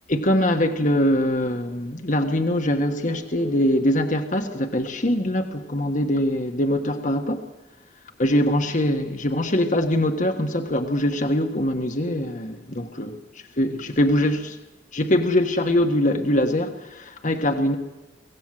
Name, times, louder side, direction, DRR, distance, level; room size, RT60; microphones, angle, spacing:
voice 1, 0.1-7.5 8.2-13.2 13.6-14.6 14.9-17.8, left 1 dB, 45° left, 1.5 m, -23 dB
24.0 x 18.0 x 7.6 m
head